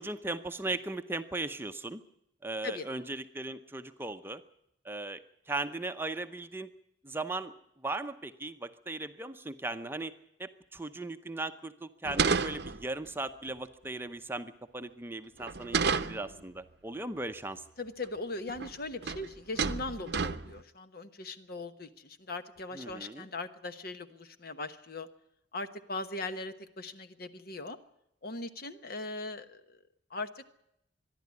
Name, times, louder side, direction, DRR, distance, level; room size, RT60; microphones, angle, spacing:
voice 1, 0.0-2.0 2.4-4.4 4.8-6.7 7.0-7.5 7.8-10.1 10.4-17.6 22.7-23.3, right 2 dB, 10° right, 8 dB, 0.7 m, -38 dB
sound 1, 12.0-13.1 15.4-16.4 18.0-18.1 18.5-18.8 19.0-19.3 19.6-20.6, right 5 dB, 60° right, 0.8 m, -31 dB
voice 2, 17.8-25.1 25.5-27.8 28.2-29.8 30.1-30.4, left 2 dB, 55° left, 10 dB, 1.2 m, -39 dB
24.5 x 11.5 x 9.6 m, 0.78 s
head